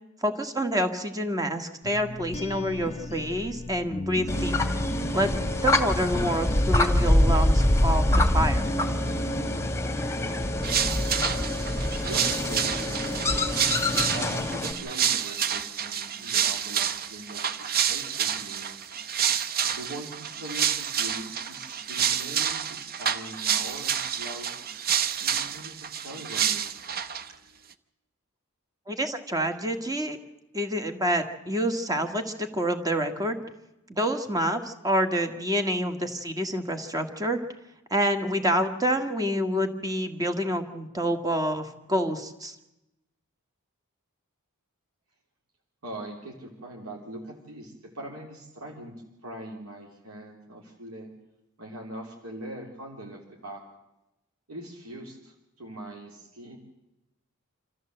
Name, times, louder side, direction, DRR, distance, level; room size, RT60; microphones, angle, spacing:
voice 1, 0.2-4.6 5.1-8.1 8.3-8.6 28.9-30.2 30.5-33.4 33.9-37.4 37.9-42.5, equal, 15° right, 6 dB, 1.7 m, -27 dB
sound 1, 1.8-10.6, equal, 30° left, 0.8 m, -36 dB
sound 2, 4.3-14.7, left 1 dB, 15° left, 1.9 m, -25 dB
sound 3, 10.6-27.3, right 8 dB, 45° right, 0.8 m, -29 dB
voice 2, 11.1-13.4 14.1-18.7 19.7-24.5 25.2-26.9 45.8-51.1 51.6-53.6 54.5-56.6, right 1 dB, 70° right, 0 dB, 3.2 m, -42 dB
26.5 x 14.0 x 7.8 m, 0.95 s
head